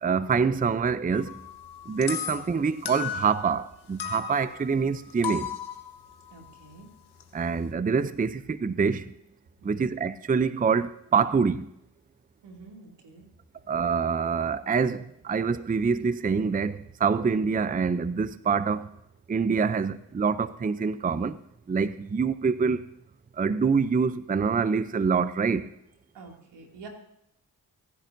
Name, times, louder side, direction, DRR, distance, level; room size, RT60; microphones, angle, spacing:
voice 1, 0.0-1.4 1.9-5.6 7.3-9.1 9.6-11.7 13.7-18.9 19.3-21.4 21.7-22.8 23.3-25.7, right 5 dB, 20° right, 0.5 m, -26 dB
sound 1, 1.1-3.7 4.0-7.7, left 8 dB, 70° left, 1.4 m, -37 dB
voice 2, 6.3-6.9 9.6-9.8 12.4-13.3 26.1-26.9, right 4 dB, 85° right, 2.7 m, -47 dB
23.5 x 10.5 x 2.7 m
supercardioid pair, 50°, 40 cm